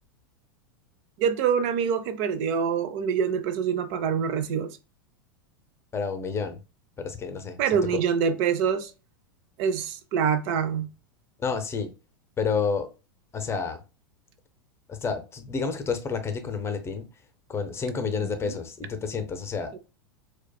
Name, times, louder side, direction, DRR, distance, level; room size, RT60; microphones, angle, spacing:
voice 1, 1.2-4.8 7.6-8.9 9.6-10.9 18.4-18.5 19.7-19.8, right 7 dB, 50° right, 0.4 m, -25 dB
voice 2, 5.9-6.6 7.0-7.6 7.9-8.0 11.4-11.9 12.4-12.9 13.3-13.8 14.9-17.1 17.5-19.8, left 5 dB, 20° left, 0.6 m, -29 dB
4.5 x 2.2 x 2.2 m
hypercardioid pair, 95°, 12 cm